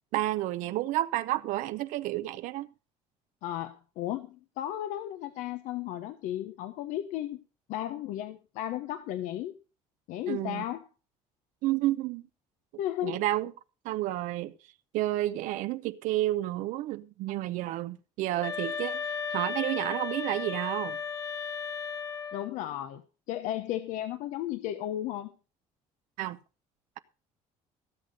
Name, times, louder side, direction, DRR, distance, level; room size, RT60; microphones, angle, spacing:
voice 1, 0.1-2.7 10.3-10.7 11.6-12.2 13.0-13.5 13.8-14.5 14.9-21.0 26.2-26.4, right 15 dB, 75° right, 0.7 m, -30 dB
voice 2, 3.4-7.4 7.7-9.5 10.1-10.8 12.8-13.2 22.3-23.0 23.3-25.3, left 12 dB, 80° left, 1.0 m, -34 dB
sound 1, 18.4-22.6, left 6 dB, 25° left, 1.2 m, -35 dB
16.0 x 6.7 x 5.3 m
cardioid pair, 100°, 13 cm